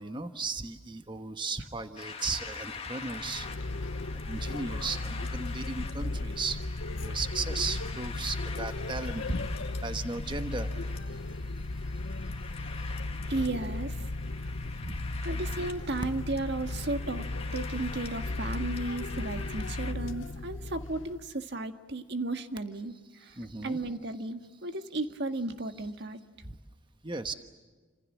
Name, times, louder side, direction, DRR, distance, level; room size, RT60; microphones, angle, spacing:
voice 1, 0.0-3.5 4.1-6.6 7.0-12.3 14.8-15.1 23.1-23.8 26.4-26.6 27.0-27.3, right 3 dB, 25° right, 8 dB, 1.3 m, -36 dB
sound 1, 2.0-19.9, left 5 dB, 30° left, 1.9 m, -45 dB
sound 2, 3.0-21.2, left 2 dB, 70° left, 0.9 m, -36 dB
voice 2, 13.3-13.9 15.2-17.2 17.5-22.9 23.2-23.3 23.6-26.2, right 2 dB, 55° right, 7 dB, 1.7 m, -34 dB
30.0 x 26.5 x 7.4 m, 1.4 s
head